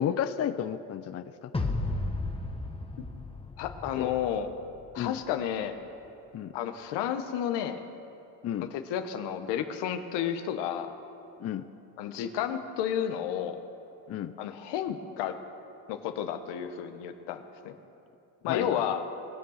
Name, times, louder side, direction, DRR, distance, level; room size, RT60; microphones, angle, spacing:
voice 1, 0.0-1.5 4.0-4.1 5.0-5.2 6.3-6.5 8.4-8.7 11.4-11.6 14.1-14.3 18.5-18.8, left 9 dB, 35° left, 11 dB, 0.5 m, -32 dB
sound 1, 1.5-4.8, left 2 dB, 15° left, 1.3 m, -34 dB
voice 2, 3.6-4.5 4.9-5.8 6.5-7.8 8.9-10.9 12.0-13.6 14.4-15.3 15.9-17.7 18.4-19.0, left 9 dB, 75° left, 7 dB, 1.1 m, -31 dB
20.5 x 6.9 x 6.5 m, 2.8 s
supercardioid pair, 75°, 42 cm